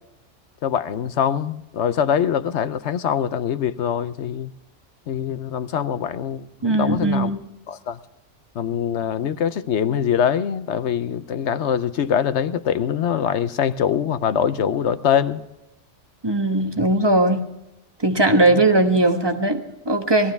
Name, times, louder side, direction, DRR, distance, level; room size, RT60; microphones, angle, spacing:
voice 1, 0.6-4.5 5.1-7.3 7.7-8.0 8.5-15.4 18.5-18.6, left 8 dB, 75° left, 12 dB, 1.0 m, -23 dB
voice 2, 6.6-7.4 16.2-17.4 18.0-20.3, right 2 dB, 20° right, 5 dB, 1.2 m, -19 dB
19.0 x 14.5 x 3.4 m, 0.89 s
omnidirectional pair, 1.2 m